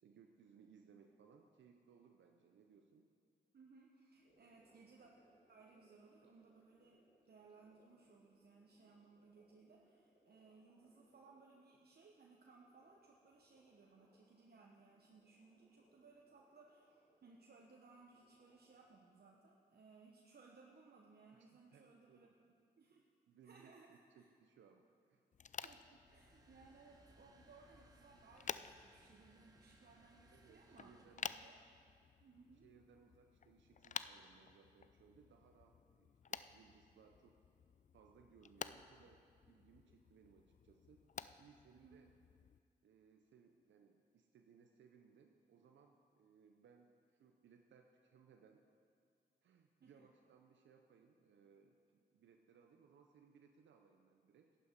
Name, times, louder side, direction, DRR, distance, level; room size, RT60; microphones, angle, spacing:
voice 1, 0.0-3.1 21.4-22.3 23.3-23.7 24.2-25.2 30.3-31.3 32.5-37.4 37.9-41.0 41.4-42.1 42.8-48.6 49.4-54.6, right 6 dB, 80° right, 3 dB, 0.6 m, -66 dB
voice 2, 3.5-5.1 5.5-7.0 7.3-22.3 22.8-23.1 23.4-24.3 25.5-31.6 32.2-32.7 41.7-42.0 49.8-49.9, right 4 dB, 55° right, -1 dB, 1.1 m, -64 dB
Gurgling, 4.1-19.4, equal, 75° left, 3.5 m, -75 dB
sound 1, 25.3-42.6, left 7 dB, 40° left, 0.4 m, -52 dB
sound 2, 26.1-31.3, right 2 dB, 20° right, 1.7 m, -68 dB
11.0 x 9.8 x 5.3 m, 2.2 s
supercardioid pair, 45°, 19 cm